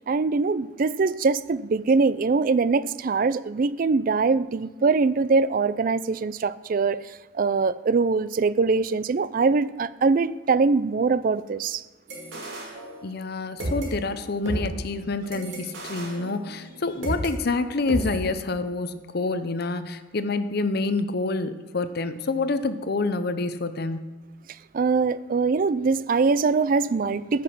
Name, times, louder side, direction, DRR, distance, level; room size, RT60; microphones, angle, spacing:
voice 1, 0.1-11.8 24.7-27.4, right 4 dB, 45° right, 0.4 m, -23 dB
sound 1, 12.1-13.3 13.6-17.3 17.9-18.2, right 1 dB, 65° right, 2.4 m, -33 dB
voice 2, 13.0-24.1, left 3 dB, 50° left, 0.7 m, -27 dB
14.5 x 6.0 x 6.0 m
head